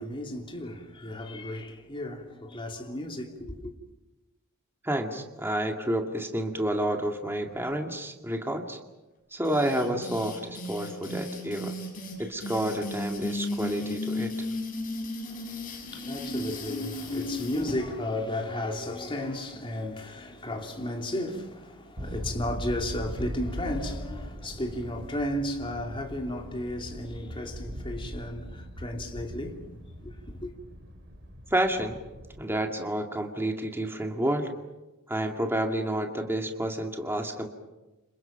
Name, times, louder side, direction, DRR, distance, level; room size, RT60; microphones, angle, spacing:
voice 1, 0.0-3.7 15.2-29.7 30.0-30.1 30.4-30.5, left 1 dB, 25° left, 3.1 m, -34 dB
voice 2, 4.8-8.8 9.3-11.7 12.2-14.3 31.5-32.0 32.4-34.5 35.1-37.5, right 1 dB, 10° right, 2.2 m, -29 dB
sound 1, 9.4-17.8, left 2 dB, 40° left, 7.7 m, -35 dB
sound 2, 22.0-32.4, equal, 50° right, 4.2 m, -40 dB
30.0 x 27.5 x 5.9 m
head